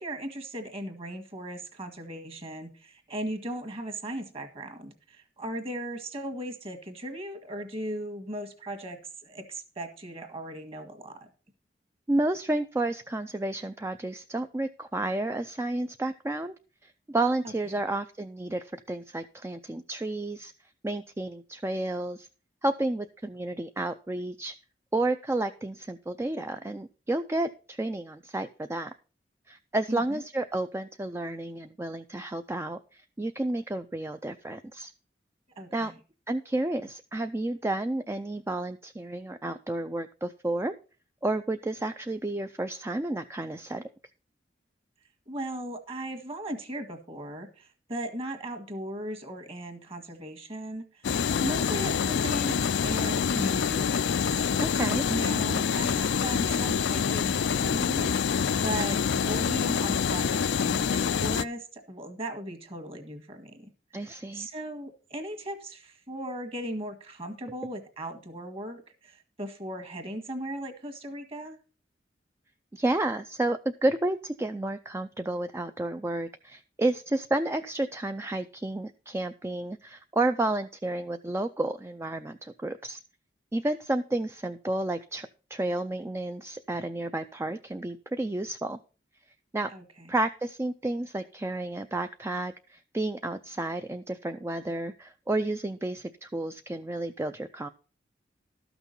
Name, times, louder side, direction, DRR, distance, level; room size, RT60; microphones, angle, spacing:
voice 1, 0.0-11.3 17.4-17.5 29.9-30.2 35.6-35.9 45.3-51.1 51.4-54.1 55.1-63.7 64.3-71.6 89.7-90.1, right 1 dB, 35° right, 7 dB, 1.7 m, -37 dB
voice 2, 12.1-16.5 16.8-20.5 20.8-22.3 22.6-24.5 24.9-28.9 29.5-34.9 35.7-35.9 36.3-40.8 41.2-43.8 54.6-55.0 63.9-64.5 72.7-83.0 83.5-88.8 89.5-89.7 90.1-97.7, right 2 dB, 15° right, 8 dB, 0.4 m, -31 dB
sound 1, 51.0-61.5, left 7 dB, 70° left, 0.4 m, -26 dB
12.5 x 6.1 x 5.4 m, 0.35 s
head